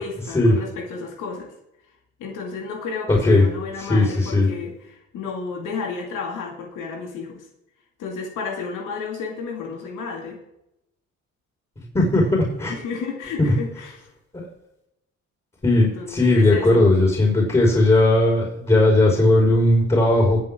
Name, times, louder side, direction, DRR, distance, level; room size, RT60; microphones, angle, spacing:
voice 1, 0.0-1.5 2.2-7.5 8.0-10.4 12.7-14.1 15.8-16.9, left 5 dB, 85° left, 1 dB, 2.4 m, -32 dB
voice 2, 3.1-3.4 3.9-4.5 11.9-12.7 13.4-13.5 15.6-20.4, left 2 dB, 20° left, -2 dB, 4.9 m, -17 dB
21.5 x 7.6 x 3.7 m, 0.86 s
cardioid pair, 90°, 30 cm